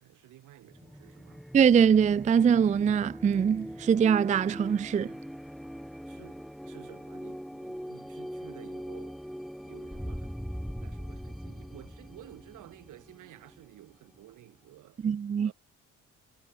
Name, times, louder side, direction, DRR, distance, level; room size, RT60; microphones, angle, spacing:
voice 1, 0.0-1.5 6.1-9.4 9.6-10.4 10.8-15.1 15.4-15.5, right 15 dB, 85° right, 2.3 m, -52 dB
sound 1, 0.7-14.1, equal, ahead, 2.9 m, -42 dB
voice 2, 1.5-5.1 15.0-15.5, right 7 dB, 25° right, 0.4 m, -23 dB
cardioid pair, 90°, 30 cm